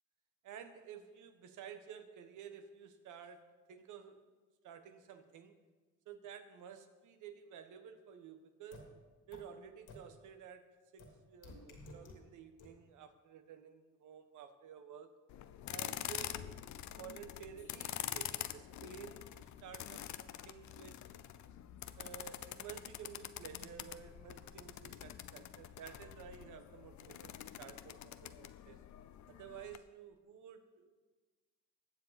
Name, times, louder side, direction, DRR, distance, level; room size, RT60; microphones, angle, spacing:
voice 1, 0.4-4.2 4.6-5.6 6.1-8.9 9.3-15.1 15.7-16.5 16.9-21.0 22.0-28.8 29.3-31.0, right 8 dB, 80° right, 9 dB, 1.2 m, -52 dB
sound 1, 8.7-8.8 9.3-9.4 9.9-10.0 11.0-11.1 11.4-12.1 12.6-12.7, left 4 dB, 85° left, 2.7 m, -52 dB
sound 2, 15.3-29.8, left 12 dB, 70° left, 0.7 m, -46 dB
20.0 x 7.4 x 4.2 m, 1.3 s
cardioid pair, 90°, 30 cm